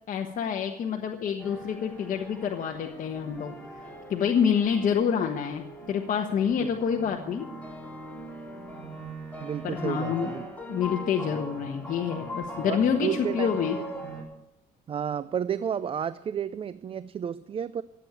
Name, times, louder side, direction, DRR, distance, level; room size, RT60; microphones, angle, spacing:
voice 1, 0.1-3.5 4.1-7.4 9.6-10.3 10.7-13.8, left 7 dB, 50° left, 2 dB, 1.3 m, -27 dB
sound 1, 1.4-14.2, right 1 dB, 10° left, 4.0 m, -40 dB
voice 2, 9.4-10.4 12.6-13.5 13.9-14.0 14.9-17.8, right 8 dB, 35° right, 16 dB, 0.4 m, -31 dB
15.0 x 8.3 x 8.4 m, 0.88 s
cardioid pair, 110°, 17 cm